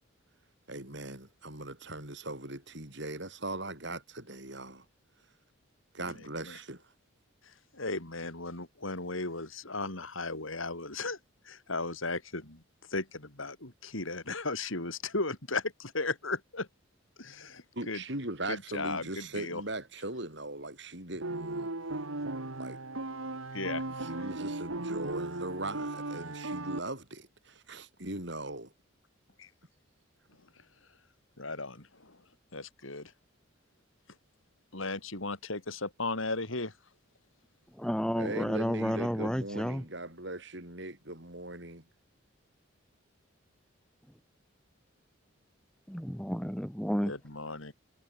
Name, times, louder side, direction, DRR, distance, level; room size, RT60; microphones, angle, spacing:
voice 1, 0.7-4.9 5.2-5.4 5.9-6.9 17.7-22.0 22.6-22.8 24.0-28.7 38.2-41.9, right 2 dB, 55° right, 7.3 m, -40 dB
voice 2, 7.4-16.7 17.2-18.0 18.5-19.6 23.5-24.3 29.4-29.5 30.3-30.9 31.4-33.1 34.7-36.8 47.0-47.7, left 3 dB, 75° left, 4.5 m, -36 dB
sound 1, 21.2-26.8, right 2 dB, 85° right, 2.4 m, -37 dB
voice 3, 37.7-39.8 45.9-47.1, equal, 5° left, 1.7 m, -31 dB
head